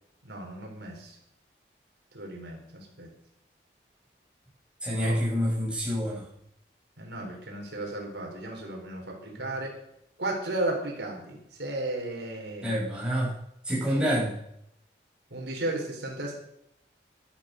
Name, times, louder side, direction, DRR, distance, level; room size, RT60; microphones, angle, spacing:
voice 1, 0.2-1.1 2.1-3.1 5.0-5.2 7.0-9.8 10.2-12.7 13.8-14.1 15.3-16.3, right 1 dB, 80° right, 0 dB, 4.4 m, -34 dB
voice 2, 4.8-6.2 12.6-13.3 13.7-14.3, equal, 5° right, -7 dB, 7.1 m, -27 dB
13.0 x 12.0 x 6.6 m, 0.75 s
head